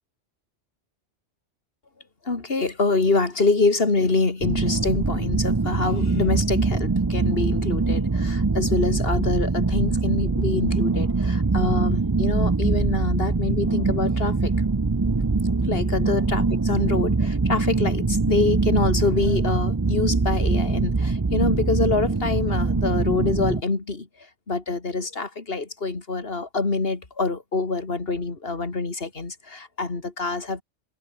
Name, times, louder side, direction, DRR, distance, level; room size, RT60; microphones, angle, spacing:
voice 1, 2.3-14.5 15.6-16.4 16.7-24.1 24.5-30.6, left 3 dB, 50° left, 2.8 m, -25 dB
sound 1, 4.4-23.6, right 3 dB, 20° right, 0.6 m, -23 dB
omnidirectional pair, 1.2 m